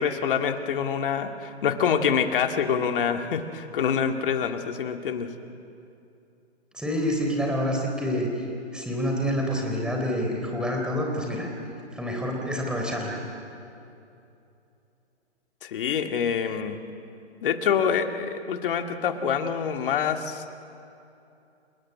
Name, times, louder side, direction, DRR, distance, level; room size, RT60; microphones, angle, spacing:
voice 1, 0.0-5.3 15.6-16.8 17.4-20.5, left 7 dB, 50° left, 5 dB, 2.1 m, -26 dB
voice 2, 6.7-8.3 8.7-11.5 11.9-13.2, equal, ahead, 0 dB, 3.7 m, -27 dB
29.0 x 18.5 x 9.9 m, 2.7 s
hypercardioid pair, 145°, 34 cm